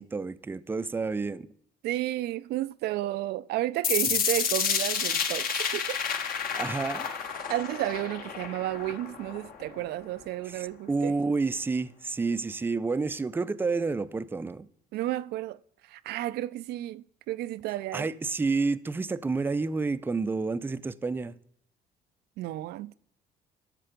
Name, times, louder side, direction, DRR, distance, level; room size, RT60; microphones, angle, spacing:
voice 1, 0.0-1.5 6.6-7.1 10.6-14.7 17.9-21.3, right 4 dB, 10° right, 0.4 m, -29 dB
voice 2, 1.8-6.0 7.5-11.1 14.9-15.6 15.9-18.1 22.4-22.9, right 15 dB, 75° right, 0.4 m, -32 dB
sound 1, 3.8-9.8, left 7 dB, 60° left, 1.5 m, -30 dB
12.0 x 6.7 x 5.1 m
cardioid pair, 110°, 17 cm